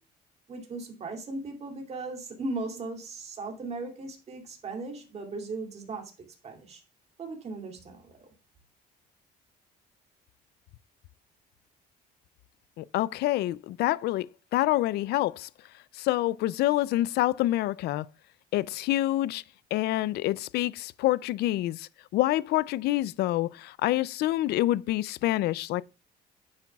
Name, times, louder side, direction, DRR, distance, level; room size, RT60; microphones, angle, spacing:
voice 1, 0.5-6.1 6.4-6.8 7.2-8.3, right 3 dB, 40° right, 2.7 m, -37 dB
voice 2, 12.8-14.3 14.5-15.5 16.0-18.1 18.5-19.4 19.7-25.8, left 15 dB, 75° left, 0.4 m, -27 dB
9.9 x 8.7 x 2.3 m
cardioid pair, 110°, 17 cm